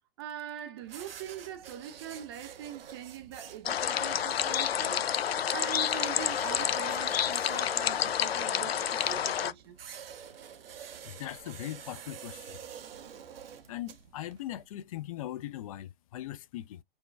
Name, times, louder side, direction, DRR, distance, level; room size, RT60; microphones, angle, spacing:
voice 1, 0.2-5.1 5.5-9.8, right 10 dB, 25° right, 0.4 m, -42 dB
sound 1, 0.8-14.7, right 8 dB, 75° right, 0.8 m, -49 dB
sound 2, 3.7-9.5, left 9 dB, 80° left, 0.6 m, -29 dB
voice 2, 11.0-12.6 13.7-16.8, left 13 dB, 40° left, 0.4 m, -40 dB
4.5 x 2.2 x 3.2 m
hypercardioid pair, 125°, 30 cm